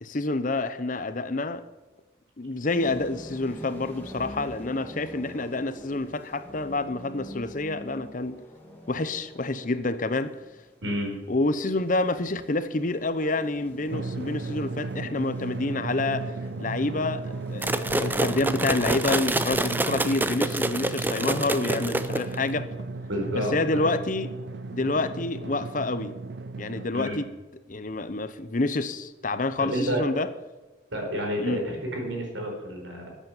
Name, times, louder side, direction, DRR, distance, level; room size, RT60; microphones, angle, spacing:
voice 1, 0.0-1.6 2.4-8.4 8.9-10.4 11.3-22.7 23.3-24.3 24.7-26.2 26.6-27.2 27.7-30.3 31.4-31.6, left 2 dB, 45° left, 0.8 m, -28 dB
sound 1, 2.7-19.8, left 1 dB, 10° left, 2.8 m, -46 dB
voice 2, 10.8-11.1 23.1-23.9 26.9-27.2 29.6-30.1 30.9-33.1, equal, 80° right, 4.7 m, -30 dB
Drum, 13.9-26.9, right 3 dB, 65° right, 0.6 m, -35 dB
sound 2, 17.6-22.5, right 1 dB, 10° right, 0.5 m, -27 dB
13.0 x 8.7 x 7.2 m
head